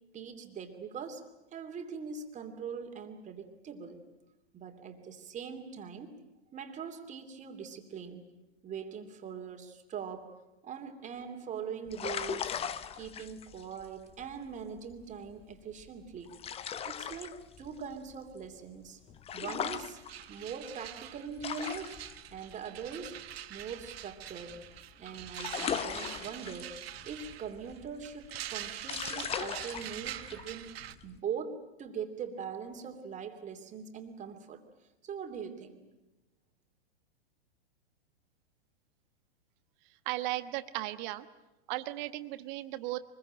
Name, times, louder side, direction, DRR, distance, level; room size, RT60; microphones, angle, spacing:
voice 1, 0.1-1.2 1.5-4.0 4.5-6.2 6.5-8.3 8.6-10.3 10.6-12.6 12.9-16.3 16.9-19.0 19.3-20.0 20.3-22.0 22.3-23.2 23.5-24.6 25.0-34.6 35.0-35.8, right 6 dB, 25° right, 6 dB, 2.9 m, -42 dB
sound 1, 11.9-24.8 25.0-31.2, left 8 dB, 20° left, 0.8 m, -40 dB
sound 2, 19.4-19.5 19.7-30.9, right 12 dB, 65° right, 1.3 m, -44 dB
voice 2, 40.0-41.3 41.7-43.0, right 17 dB, 45° right, 11 dB, 1.4 m, -36 dB
24.5 x 22.0 x 9.0 m, 1.0 s
hypercardioid pair, 120°, 32 cm